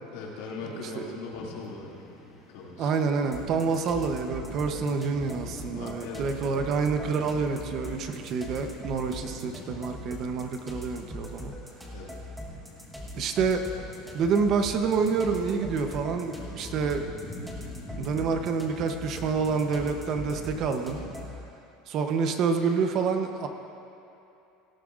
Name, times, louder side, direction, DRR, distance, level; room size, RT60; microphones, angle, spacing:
voice 1, 0.1-1.9 2.5-2.9 3.4-3.5 5.7-6.7 11.9-12.1, left 4 dB, 80° left, -3 dB, 2.4 m, -40 dB
sound 1, 1.3-21.2, left 2 dB, 25° left, 2.2 m, -46 dB
voice 2, 2.8-11.5 13.1-13.6 14.1-17.1 18.0-21.0 21.9-23.5, right 5 dB, 40° right, 6 dB, 0.8 m, -27 dB
sound 2, 3.3-21.4, left 1 dB, 5° right, 1.2 m, -42 dB
18.0 x 13.5 x 2.5 m, 2.8 s
cardioid pair, 165°, 0 cm